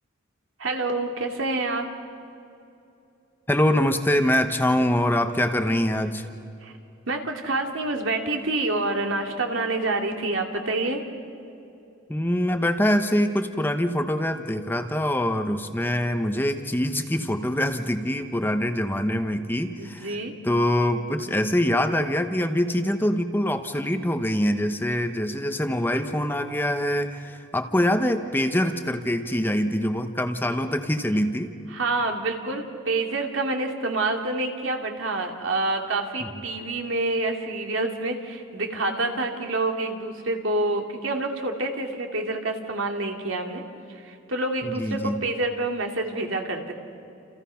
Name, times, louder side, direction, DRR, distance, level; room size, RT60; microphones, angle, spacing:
voice 1, 0.6-1.9 6.6-6.7 7.1-11.0 19.8-20.3 31.7-43.6 43.9-46.7, right 2 dB, 80° right, 3 dB, 2.8 m, -27 dB
voice 2, 3.5-6.3 12.1-20.2 20.4-31.5 36.2-36.3 44.6-45.2, left 1 dB, 10° left, 7 dB, 1.0 m, -24 dB
29.0 x 28.5 x 5.8 m, 2.7 s
head